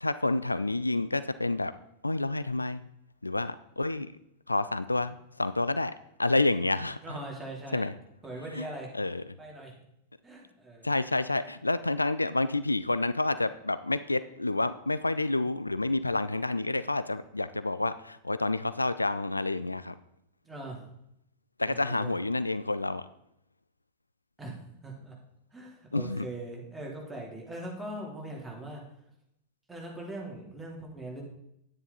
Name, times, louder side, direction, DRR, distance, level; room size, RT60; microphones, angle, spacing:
voice 1, 0.0-1.7 2.0-2.9 3.2-4.1 4.5-7.0 7.7-7.9 8.6-8.7 8.9-9.2 10.8-19.9 21.6-23.1 25.9-26.3, left 2 dB, 85° left, 14 dB, 0.4 m, -29 dB
voice 2, 7.0-7.8 8.2-8.9 9.4-9.7 10.2-10.9 20.4-20.8 21.7-22.2 24.4-25.1 25.5-28.8 29.7-31.2, right 1 dB, 10° right, -3 dB, 3.3 m, -41 dB
10.5 x 9.5 x 4.0 m, 0.78 s
figure-of-eight pair, 90°, 0 cm